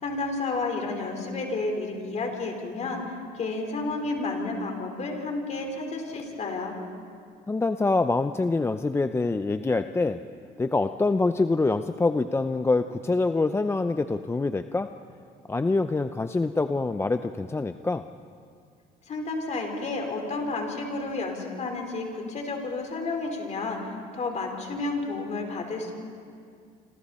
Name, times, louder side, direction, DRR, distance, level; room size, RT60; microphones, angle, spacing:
voice 1, 0.0-6.8 19.1-25.9, left 3 dB, 45° left, 2 dB, 4.3 m, -31 dB
voice 2, 7.5-10.2 10.6-14.9 15.5-18.0, left 3 dB, 15° left, 9 dB, 0.5 m, -25 dB
27.0 x 27.0 x 4.3 m, 2.2 s
cardioid pair, 110°, 17 cm